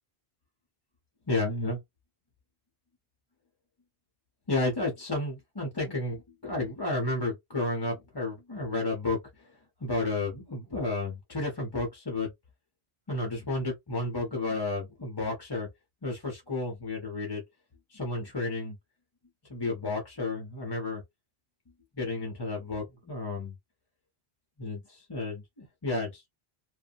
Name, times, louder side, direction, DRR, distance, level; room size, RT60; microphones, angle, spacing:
voice 1, 1.3-1.8 4.5-9.2 9.8-12.3 13.1-15.7 16.0-17.4 17.9-18.8 19.5-21.0 21.9-23.6 24.6-26.3, left 2 dB, 25° left, 0.7 m, -32 dB
2.7 x 2.2 x 2.5 m
omnidirectional pair, 1.1 m